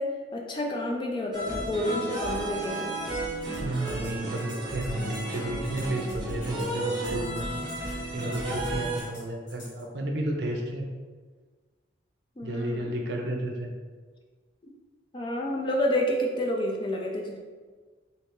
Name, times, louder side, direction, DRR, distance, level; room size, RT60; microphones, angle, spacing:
voice 1, 0.0-3.0 12.4-12.8 14.6-14.7 15.1-17.4, left 1 dB, 25° left, 0 dB, 0.3 m, -29 dB
sound 1, 1.3-9.0, right 1 dB, 25° right, 0.7 m, -33 dB
sound 2, 3.3-9.8, equal, 70° left, 1.3 m, -44 dB
voice 2, 3.6-10.9 12.4-13.7, right 1 dB, 65° right, 1 dB, 0.5 m, -32 dB
3.3 x 2.8 x 2.9 m, 1.5 s
head